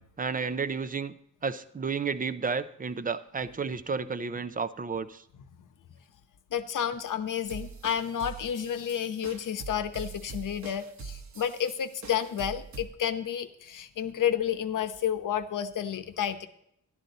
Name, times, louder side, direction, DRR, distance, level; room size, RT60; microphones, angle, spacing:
voice 1, 0.2-1.1 1.4-5.2, right 5 dB, 25° right, 13 dB, 0.5 m, -32 dB
voice 2, 6.5-16.5, left 9 dB, 80° left, 10 dB, 0.9 m, -31 dB
sound 1, 7.5-12.9, right 5 dB, 60° right, 1.2 m, -43 dB
12.0 x 11.5 x 4.0 m, 0.75 s
wide cardioid pair, 145°, 31 cm